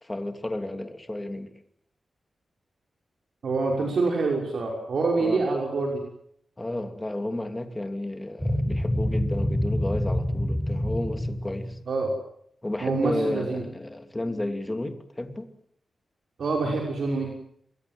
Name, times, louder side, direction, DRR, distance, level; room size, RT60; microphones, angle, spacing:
voice 1, 0.0-1.5 3.8-4.0 5.2-5.5 6.6-11.8 12.6-15.5, left 1 dB, 15° left, 2.8 m, -32 dB
voice 2, 3.4-6.0 11.9-12.1 12.8-13.6 16.4-17.3, right 3 dB, 65° right, 6.0 m, -26 dB
sound 1, 8.4-11.8, left 1 dB, ahead, 5.1 m, -27 dB
28.0 x 22.5 x 7.9 m
wide cardioid pair, 115°, 0 cm